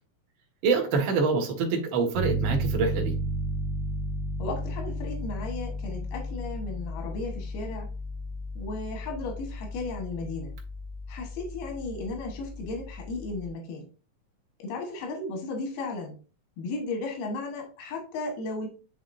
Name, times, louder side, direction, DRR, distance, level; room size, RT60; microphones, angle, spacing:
voice 1, 0.6-3.1, right 4 dB, 60° right, 1 dB, 1.3 m, -25 dB
Piano, 2.1-13.5, right 1 dB, 85° right, 1.4 m, -34 dB
voice 2, 4.4-7.9 8.6-10.5 11.1-13.9 14.6-16.2 16.6-18.7, left 3 dB, 90° left, 2 dB, 3.1 m, -35 dB
10.0 x 3.6 x 2.6 m, 0.35 s
omnidirectional pair, 4.2 m